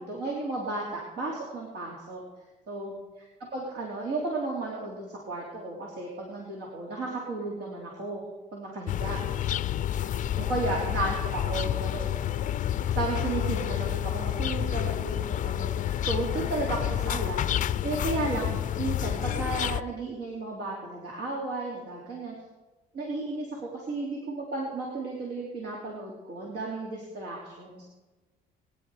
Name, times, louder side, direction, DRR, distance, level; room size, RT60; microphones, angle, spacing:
voice 1, 0.0-2.2 2.7-2.9 3.5-8.2 8.5-9.2 10.4-12.1 12.9-17.4 17.8-22.3 22.9-27.8, right 2 dB, 70° right, -3 dB, 3.2 m, -33 dB
sound 1, 8.9-19.8, left 11 dB, 50° left, 0.5 m, -29 dB
21.0 x 10.5 x 4.8 m, 1.2 s
cardioid pair, 110°, 17 cm